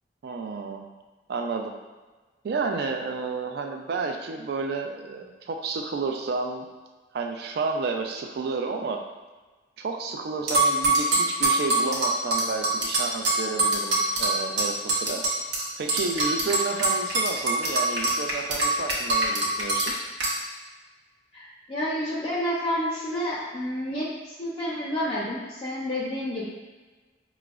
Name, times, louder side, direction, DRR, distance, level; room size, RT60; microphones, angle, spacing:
voice 1, 0.2-0.8 1.3-1.7 2.4-6.7 7.1-9.0 9.8-15.2 15.8-19.9, right 4 dB, 60° right, 3 dB, 0.3 m, -31 dB
sound 1, 10.5-15.6 15.9-19.9 20.2-20.3, right 2 dB, 80° right, 0.8 m, -23 dB
voice 2, 21.3-24.1 24.4-26.5, equal, 35° left, -6 dB, 0.4 m, -29 dB
4.8 x 2.0 x 2.3 m, 1.3 s
head